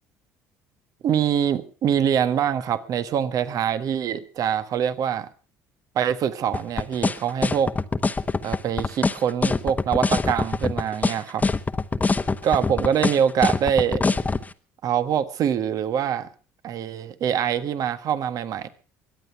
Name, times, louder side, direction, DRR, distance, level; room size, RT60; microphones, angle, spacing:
voice 1, 1.0-5.3 5.9-7.7 8.4-11.4 12.4-14.0 14.8-16.3 16.6-18.7, right 8 dB, 60° right, 12 dB, 1.4 m, -24 dB
sound 1, 6.5-14.4, left 3 dB, 20° left, 1.1 m, -23 dB
22.5 x 8.4 x 5.8 m, 0.39 s
supercardioid pair, 75°, 7 cm